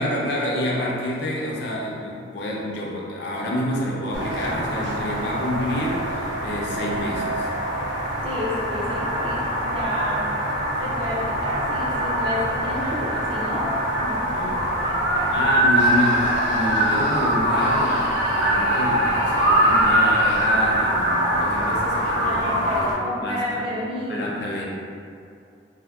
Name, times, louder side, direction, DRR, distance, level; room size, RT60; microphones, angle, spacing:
voice 1, 0.0-7.5 14.3-14.6 15.3-22.7 23.2-23.6 24.1-24.7, left 1 dB, 55° left, -4 dB, 0.5 m, -28 dB
sound 1, 4.1-22.9, right 1 dB, 70° right, 0.6 m, -23 dB
voice 2, 8.2-10.3 10.8-14.3 14.8-15.4 17.8-18.0 22.2-24.3, left 1 dB, 25° right, -6 dB, 0.3 m, -30 dB
Screaming, 15.7-20.6, equal, 80° left, 0.9 m, -31 dB
3.4 x 2.1 x 2.3 m, 2.4 s
head